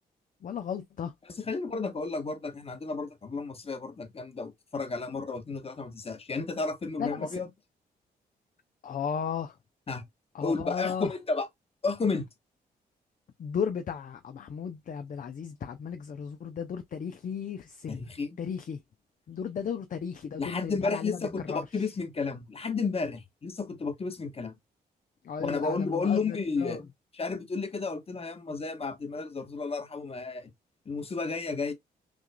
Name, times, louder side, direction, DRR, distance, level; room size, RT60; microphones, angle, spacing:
voice 1, 0.4-1.1 7.0-7.4 8.8-9.6 10.3-11.1 13.4-18.1 18.4-18.8 19.3-21.2 21.5-21.6 25.2-26.8, left 7 dB, 50° left, 0.6 m, -35 dB
voice 2, 1.2-7.5 9.9-10.0 10.4-11.5 11.8-12.3 17.9-18.4 20.4-24.5 25.4-26.9 27.1-30.5 30.8-31.7, left 4 dB, 35° left, 1.3 m, -32 dB
6.1 x 2.4 x 2.2 m
cardioid pair, 65°, 17 cm